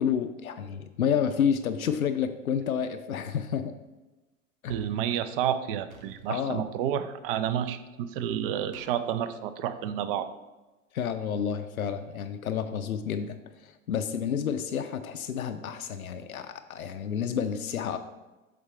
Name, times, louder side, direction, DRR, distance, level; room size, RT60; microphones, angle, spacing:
voice 1, 0.0-3.8 4.6-4.7 6.3-6.6 10.9-18.0, left 8 dB, 80° left, 8 dB, 0.5 m, -30 dB
voice 2, 4.7-10.3, right 9 dB, 45° right, 12 dB, 0.5 m, -30 dB
sound 1, 5.9-6.4 8.7-9.0, right 3 dB, 75° right, 1.1 m, -52 dB
7.6 x 4.0 x 4.5 m, 1.1 s
figure-of-eight pair, 90°, 41 cm